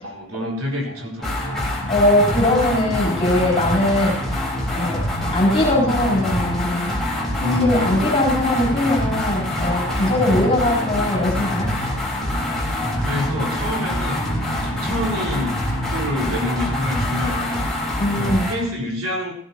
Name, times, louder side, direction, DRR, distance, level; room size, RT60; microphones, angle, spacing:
voice 1, 0.0-1.6 7.4-8.1 12.7-14.2 14.6-17.7 18.2-19.3, left 1 dB, 70° right, -2 dB, 4.3 m, -27 dB
sound 1, 1.2-18.6, left 1 dB, ahead, 3.6 m, -25 dB
voice 2, 1.9-4.1 4.7-5.0 5.3-6.9 7.6-11.7 18.0-18.5, left 1 dB, 30° left, -6 dB, 3.9 m, -20 dB
16.5 x 16.0 x 3.0 m, 0.67 s
head